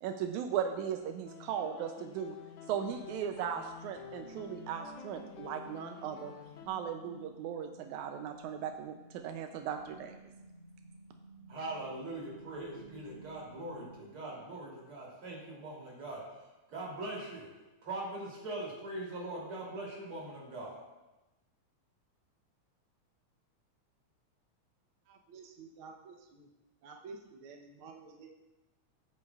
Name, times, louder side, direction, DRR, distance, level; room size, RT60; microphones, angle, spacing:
voice 1, 0.0-2.4 2.7-6.3 6.7-10.2, right 8 dB, 85° right, 6 dB, 2.0 m, -37 dB
sound 1, 1.3-6.7, left 7 dB, 85° left, 2.3 m, -50 dB
sound 2, 2.8-14.8, right 1 dB, 20° left, 2.6 m, -55 dB
voice 2, 11.5-17.5 17.8-20.8, right 2 dB, 45° right, -4 dB, 3.6 m, -41 dB
voice 3, 25.1-26.5 26.8-28.3, right 4 dB, 70° right, 1 dB, 1.3 m, -51 dB
15.5 x 8.5 x 2.3 m, 1.0 s
omnidirectional pair, 3.4 m